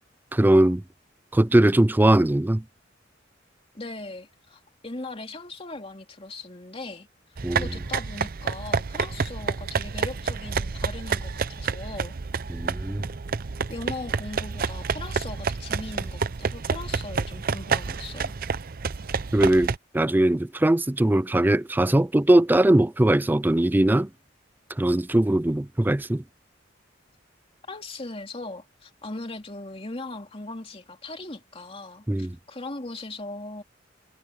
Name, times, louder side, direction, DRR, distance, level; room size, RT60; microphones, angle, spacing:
voice 1, 0.3-0.8 1.3-2.6 7.4-7.7 12.5-13.0 19.3-24.1 24.8-26.2 32.1-32.4, right 1 dB, 10° right, 0.4 m, -20 dB
voice 2, 3.7-7.1 7.5-12.2 13.7-18.3 27.7-33.6, left 2 dB, 30° left, 2.8 m, -39 dB
sound 1, 7.4-19.8, right 5 dB, 50° right, 0.6 m, -29 dB
head